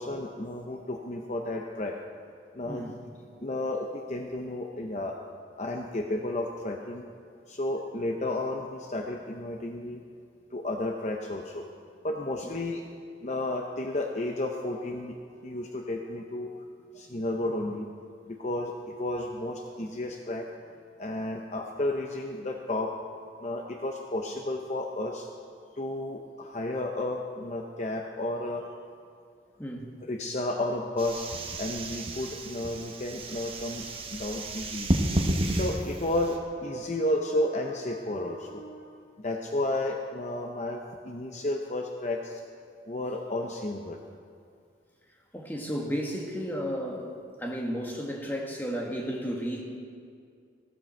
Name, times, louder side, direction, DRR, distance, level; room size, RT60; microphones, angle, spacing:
voice 1, 0.0-1.9 2.6-2.8 3.4-5.2 5.6-7.0 7.5-10.0 10.5-11.6 12.0-12.8 13.2-15.1 15.4-16.5 16.9-17.8 18.3-20.5 21.0-22.9 23.4-25.3 25.7-28.6 30.0-31.3 31.6-33.8 34.1-34.9 35.5-39.0 39.2-42.4 42.9-44.0, left 1 dB, 40° left, 2 dB, 0.7 m, -32 dB
voice 2, 2.7-3.0 29.6-29.9 45.3-49.6, equal, 10° left, 0 dB, 1.5 m, -33 dB
sound 1, 31.0-36.4, right 1 dB, 30° right, 1.1 m, -31 dB
15.5 x 13.5 x 4.4 m, 2.3 s
head